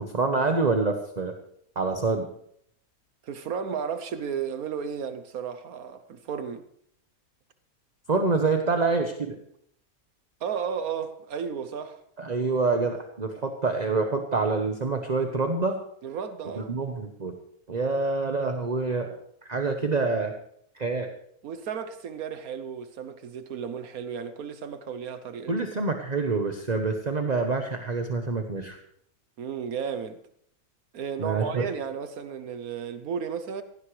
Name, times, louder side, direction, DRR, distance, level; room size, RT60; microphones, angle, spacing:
voice 1, 0.0-1.3 1.8-2.3 8.1-9.4 12.2-15.8 16.6-17.3 17.7-20.3 20.8-21.1 25.5-28.8 31.2-31.7, right 3 dB, 30° right, 1.1 m, -26 dB
voice 2, 3.2-6.7 10.4-12.0 16.0-16.8 21.4-25.7 29.4-30.2 30.9-33.6, right 7 dB, 75° right, 1.3 m, -33 dB
17.0 x 16.0 x 3.2 m
omnidirectional pair, 1.5 m